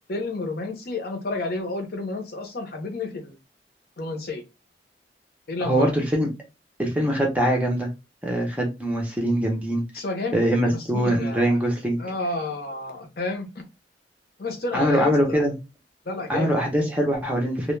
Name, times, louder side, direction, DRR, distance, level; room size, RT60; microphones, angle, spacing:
voice 1, 0.1-3.4 4.0-4.4 5.5-5.9 9.9-11.6 12.0-13.5 14.4-15.4 16.1-16.9, left 2 dB, 55° left, 3 dB, 0.7 m, -30 dB
voice 2, 5.6-6.3 6.8-7.9 8.2-9.8 10.3-12.0 14.7-15.5 16.3-17.8, equal, 10° right, 0 dB, 0.5 m, -23 dB
2.2 x 2.1 x 3.1 m, 0.26 s
head